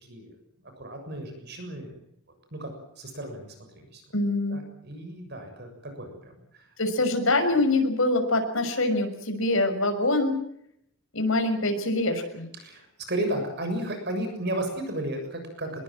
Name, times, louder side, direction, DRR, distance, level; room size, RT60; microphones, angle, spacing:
voice 1, 0.8-1.9 2.5-2.7 3.0-4.0 4.5-6.6 12.6-15.8, right 1 dB, 50° right, 5 dB, 7.0 m, -34 dB
voice 2, 4.1-4.6 6.8-10.3 11.1-12.5, left 2 dB, 65° left, 5 dB, 6.3 m, -24 dB
25.0 x 22.0 x 7.7 m, 0.74 s
head